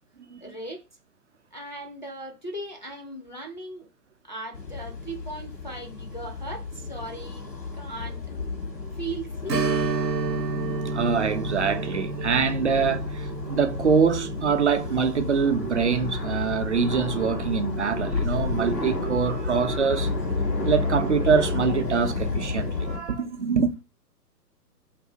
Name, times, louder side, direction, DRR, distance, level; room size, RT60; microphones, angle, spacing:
voice 1, 0.4-0.9 1.5-3.9 4.2-7.5 7.7-8.3 8.9-9.8, right 2 dB, 30° left, 0.4 m, -38 dB
sound 1, 4.5-23.0, left 3 dB, 90° left, 1.2 m, -31 dB
Strum, 9.5-18.7 19.0-19.1 21.6-21.8 22.3-22.4, right 4 dB, 85° right, 0.7 m, -32 dB
voice 2, 10.9-20.1 20.6-23.7, right 6 dB, 50° right, 0.4 m, -24 dB
2.6 x 2.4 x 3.5 m
figure-of-eight pair, 125°, 49 cm